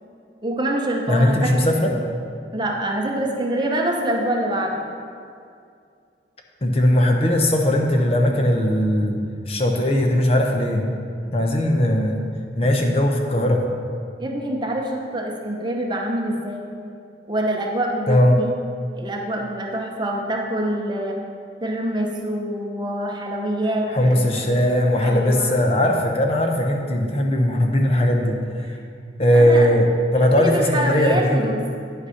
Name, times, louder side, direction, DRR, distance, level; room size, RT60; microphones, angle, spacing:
voice 1, 0.4-1.7 2.5-4.8 14.2-16.6 17.3-18.5 18.9-21.2 21.6-24.6 25.0-25.6 28.6-28.8 29.3-29.8 30.2-31.7, right 1 dB, 25° right, 1 dB, 0.8 m, -25 dB
voice 2, 1.1-1.9 6.6-9.2 9.5-10.9 11.3-12.2 12.6-13.6 18.1-18.3 23.9-28.4 28.7-28.8 29.2-31.4, left 1 dB, 30° left, 2 dB, 0.7 m, -19 dB
9.6 x 5.5 x 5.7 m, 2.3 s
head